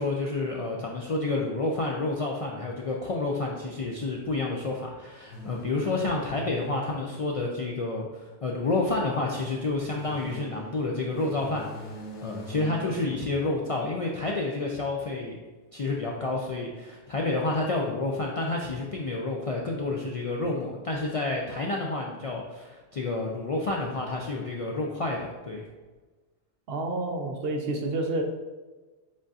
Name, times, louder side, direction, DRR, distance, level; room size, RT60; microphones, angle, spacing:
voice 1, 0.0-11.9 12.2-15.4 15.7-25.6, left 2 dB, 60° left, -2 dB, 0.3 m, -29 dB
sound 1, 5.3-8.7 9.6-14.4, equal, 85° left, 1.2 m, -43 dB
voice 2, 26.7-28.2, right 2 dB, 65° right, 3 dB, 0.7 m, -29 dB
7.2 x 2.4 x 2.6 m, 1.3 s
omnidirectional pair, 1.1 m